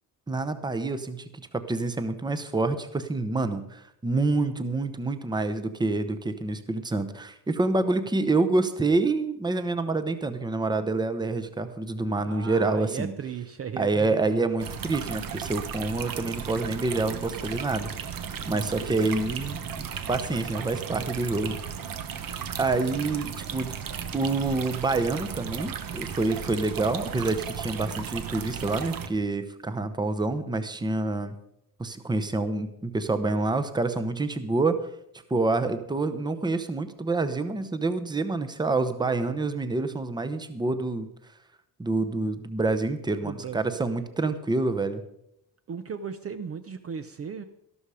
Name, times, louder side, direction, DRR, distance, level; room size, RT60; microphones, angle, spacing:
voice 1, 0.3-1.4 1.7-13.1 13.8-21.5 22.2-23.7 24.1-31.4 31.8-34.8 35.3-41.1 41.8-45.0, right 3 dB, 10° right, 10 dB, 0.8 m, -27 dB
voice 2, 12.2-14.5 18.5-19.0 43.2-43.8 45.7-47.4, right 7 dB, 40° right, 10 dB, 0.6 m, -36 dB
sound 1, 14.6-29.1, right 7 dB, 60° right, 1.2 m, -35 dB
13.0 x 12.5 x 4.9 m, 0.77 s
cardioid pair, 165°, 38 cm